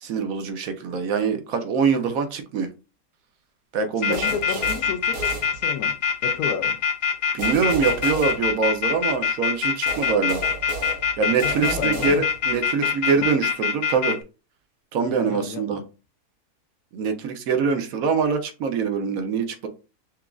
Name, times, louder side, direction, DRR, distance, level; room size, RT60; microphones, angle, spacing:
voice 1, 0.0-2.7 3.7-4.3 7.3-10.4 11.2-14.2 14.9-15.8 16.9-19.7, right 5 dB, 70° right, 1.0 m, -24 dB
voice 2, 4.0-5.9 6.2-6.8 11.4-12.2 15.0-15.8, left 7 dB, 85° left, 1.1 m, -32 dB
sound 1, 4.0-14.1, left 6 dB, 65° left, 1.0 m, -23 dB
sound 2, 4.1-6.1 7.4-9.1 9.9-12.6, right 3 dB, 50° right, 0.6 m, -34 dB
5.9 x 2.4 x 2.3 m
omnidirectional pair, 1.6 m